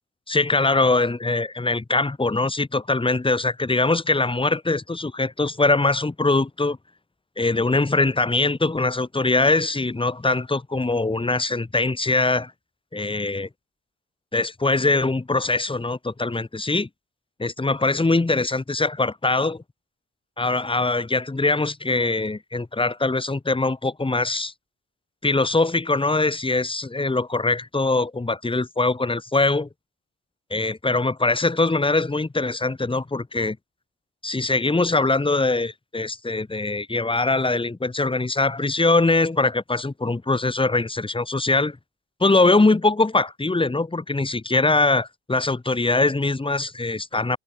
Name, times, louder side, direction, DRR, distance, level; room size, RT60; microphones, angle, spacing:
voice 1, 0.3-6.8 7.4-12.5 12.9-13.5 14.3-16.9 17.4-19.6 20.4-24.5 25.2-29.7 30.5-33.6 34.2-41.8 42.2-47.4, left 3 dB, 15° left, 4.0 m, -22 dB
cardioid pair, 90°, 30 cm